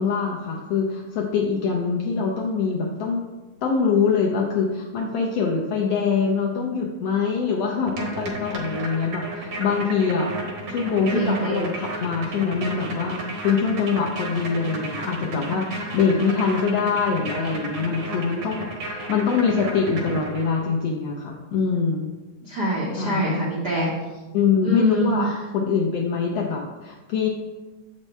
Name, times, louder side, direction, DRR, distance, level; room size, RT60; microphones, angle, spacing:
voice 1, 0.0-3.2 3.6-10.3 10.7-22.1 23.0-23.3 24.3-27.3, left 5 dB, 80° left, -1 dB, 1.4 m, -24 dB
sound 1, 7.9-20.7, right 1 dB, 65° right, 1.2 m, -33 dB
voice 2, 11.1-11.7 22.4-23.9 24.6-25.3, equal, 85° right, -5 dB, 0.9 m, -24 dB
7.2 x 6.4 x 3.2 m, 1.2 s
omnidirectional pair, 3.6 m